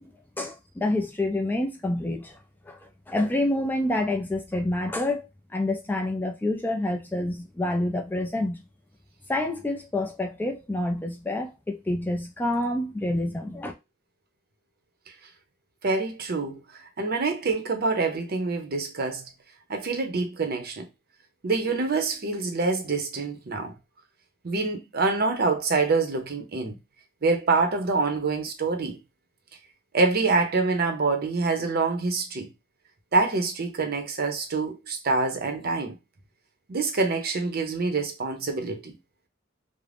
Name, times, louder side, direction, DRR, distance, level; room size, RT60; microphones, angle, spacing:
voice 1, 0.4-2.3 2.7-2.8 3.1-5.3 5.5-8.6 9.3-13.7, left 1 dB, 10° left, 0.3 m, -27 dB
voice 2, 15.8-16.6 17.0-19.2 19.7-20.9 21.4-23.7 24.4-26.8 27.2-29.0 29.9-32.5 33.1-35.9 36.7-38.9, right 3 dB, 50° right, 0.6 m, -26 dB
2.5 x 2.1 x 3.3 m
head